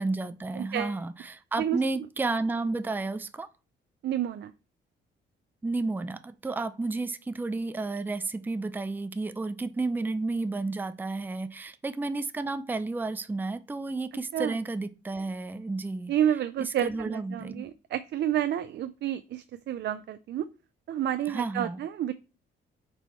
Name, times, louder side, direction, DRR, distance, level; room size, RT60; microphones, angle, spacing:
voice 1, 0.0-3.5 5.6-16.1 16.6-17.7 21.3-21.8, right 3 dB, 10° right, 0.5 m, -32 dB
voice 2, 0.6-1.0 1.6-1.8 4.0-4.5 14.3-14.6 16.1-20.5 20.9-22.1, right 10 dB, 60° right, 0.5 m, -30 dB
7.6 x 4.5 x 3.1 m
cardioid pair, 90°, 20 cm